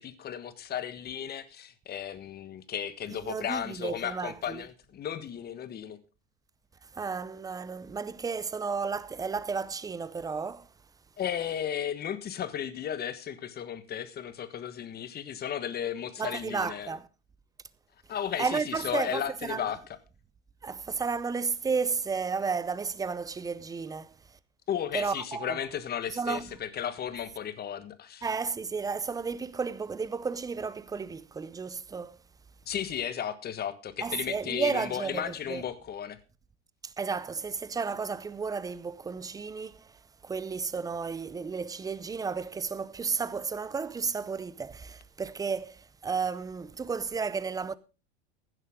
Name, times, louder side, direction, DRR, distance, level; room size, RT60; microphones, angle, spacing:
voice 1, 0.0-6.0 11.2-16.9 18.1-19.8 24.7-28.3 32.7-36.2, left 9 dB, 25° left, 1.4 m, -34 dB
voice 2, 3.1-4.6 6.9-10.7 16.2-17.1 18.4-19.7 20.6-24.1 24.9-25.6 26.1-26.4 28.2-32.2 34.0-35.6 36.8-39.9 40.2-47.8, right 5 dB, 10° right, 0.6 m, -33 dB
15.5 x 11.0 x 3.7 m
hypercardioid pair, 115°, 35 cm